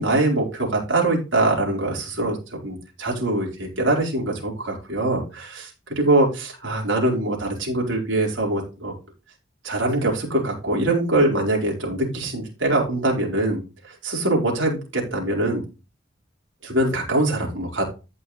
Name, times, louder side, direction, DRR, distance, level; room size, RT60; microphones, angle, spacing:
voice 1, 0.0-5.7 6.0-8.9 9.6-15.6 16.6-17.8, right 2 dB, 75° right, -1 dB, 4.4 m, -23 dB
14.5 x 5.7 x 3.2 m, 0.30 s
head